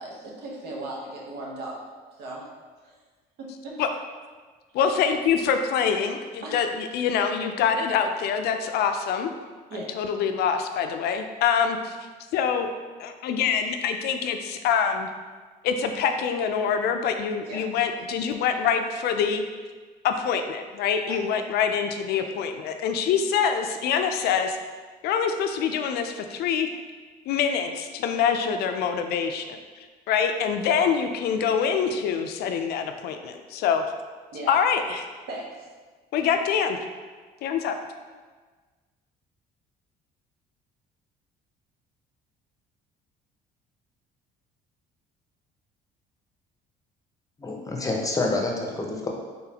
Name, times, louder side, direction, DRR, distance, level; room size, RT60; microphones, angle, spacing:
voice 1, 0.0-2.5 2.8-3.0 3.4-3.8 4.8-4.9 6.4-6.7 9.7-10.1 17.4-17.8 21.1-21.2 30.7-30.9 34.3-34.5 35.3-35.7, right 2 dB, 70° right, -2 dB, 0.9 m, -38 dB
voice 2, 4.8-9.3 10.0-12.0 12.3-12.7 13.0-15.1 15.6-19.4 20.0-24.6 25.0-26.7 27.3-29.6 30.1-33.8 34.5-35.1 36.1-36.8 37.4-37.7, left 7 dB, 70° left, 6 dB, 0.4 m, -25 dB
voice 3, 47.4-49.1, left 2 dB, 20° left, 0 dB, 0.7 m, -27 dB
3.9 x 3.6 x 2.8 m, 1.4 s
cardioid pair, 95°, 17 cm